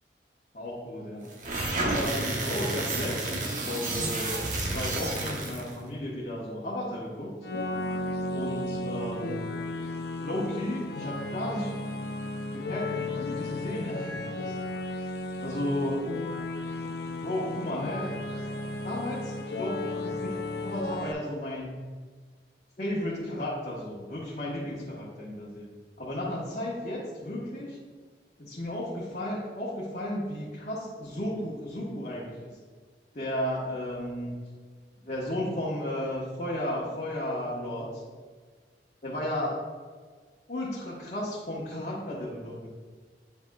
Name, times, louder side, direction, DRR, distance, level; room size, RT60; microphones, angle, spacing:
voice 1, 0.5-1.3 1.9-7.3 8.3-9.4 10.2-11.8 12.3-14.6 15.4-16.1 17.0-18.1 18.7-21.8 22.8-25.7 26.0-27.8 28.4-32.5 33.1-34.3 35.0-38.0 39.0-39.6 40.5-42.7, left 1 dB, 45° left, -7 dB, 1.1 m, -34 dB
sound 1, 1.3-5.7, right 2 dB, 45° right, 0.9 m, -31 dB
sound 2, 7.4-21.1, left 2 dB, 65° left, 0.5 m, -34 dB
9.3 x 4.9 x 2.3 m, 1.5 s
head